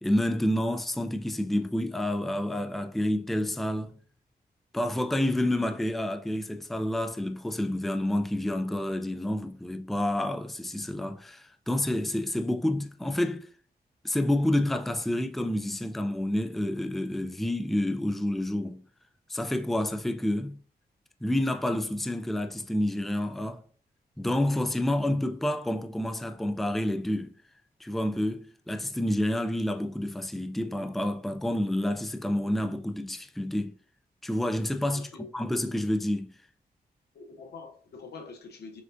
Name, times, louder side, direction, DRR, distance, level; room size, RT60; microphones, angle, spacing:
voice 1, 0.0-4.0 4.7-13.5 14.0-18.8 19.3-20.6 21.2-23.6 24.2-27.3 27.8-33.7 34.2-35.1 35.3-36.3, left 1 dB, ahead, 0.4 m, -29 dB
voice 2, 34.9-35.3 37.1-38.8, left 4 dB, 85° left, 0.8 m, -45 dB
5.9 x 2.4 x 2.5 m
cardioid pair, 70°, 16 cm